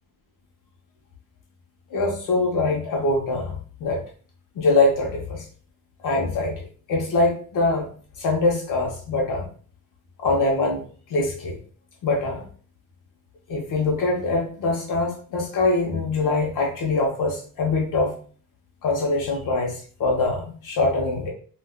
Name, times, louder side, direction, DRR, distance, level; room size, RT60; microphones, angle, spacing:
voice 1, 1.9-4.0 4.6-5.4 6.0-6.6 6.9-7.9 8.2-9.5 10.2-11.6 12.0-12.5 13.5-18.2 18.8-21.3, left 2 dB, 60° left, -1 dB, 0.8 m, -23 dB
3.5 x 2.4 x 2.2 m, 0.42 s
cardioid pair, 170°, 35 cm